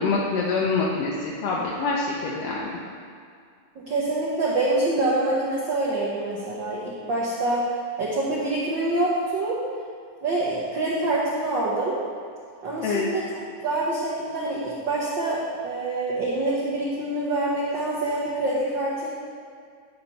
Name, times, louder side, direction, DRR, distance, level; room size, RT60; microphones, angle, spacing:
voice 1, 0.0-2.7 12.8-13.1, left 4 dB, 70° left, -4 dB, 1.6 m, -25 dB
voice 2, 3.7-7.7 8.0-9.6 10.2-12.0 12.6-13.2 13.6-19.1, right 2 dB, 70° right, -6 dB, 1.1 m, -26 dB
10.0 x 4.4 x 5.5 m, 2.2 s
omnidirectional pair, 3.5 m